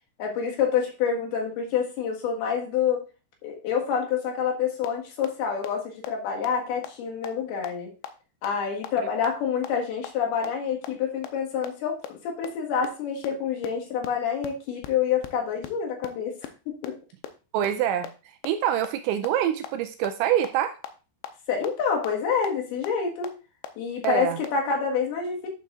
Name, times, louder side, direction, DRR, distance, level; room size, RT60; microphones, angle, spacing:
voice 1, 0.2-3.1 3.4-7.9 8.4-16.4 16.7-17.0 21.5-23.3 23.8-25.5, left 7 dB, 65° left, 0 dB, 3.1 m, -27 dB
sound 1, 4.8-4.9 5.2-5.3 5.6-5.7 6.0-6.1 6.4-6.5 6.8-6.9 7.2-7.3 7.6-7.7 8.0-8.1 8.4-8.5 8.8-8.9 9.2-9.3 9.6-9.7 10.0-10.1 10.4-10.5 10.8-10.9 11.2-11.3 11.6-11.7 12.0-12.1 12.4-12.5 12.8-12.9 13.2-13.3 13.6-13.7 14.0-14.1 14.4-14.5 14.8-14.9 15.2-15.3 15.6-15.7 16.0-16.1 16.4-16.5 16.8-16.9 17.2-17.3 17.6-17.7 18.0-18.1 18.4-18.5 18.8-18.9 19.2-19.3 19.6-19.7 20.0-20.1 20.4-20.5 20.8-20.9 21.2-21.3 21.6-21.7 22.0-22.1 22.4-22.5 22.8-22.9 23.2-23.3 23.6-23.7 24.0-24.1 24.4-24.5, left 10 dB, 85° left, 2.6 m, -36 dB
voice 2, 17.5-18.1 18.4-20.8 24.0-24.4, right 11 dB, 85° right, 7 dB, 2.7 m, -25 dB
11.5 x 7.0 x 2.4 m, 0.32 s
omnidirectional pair, 5.6 m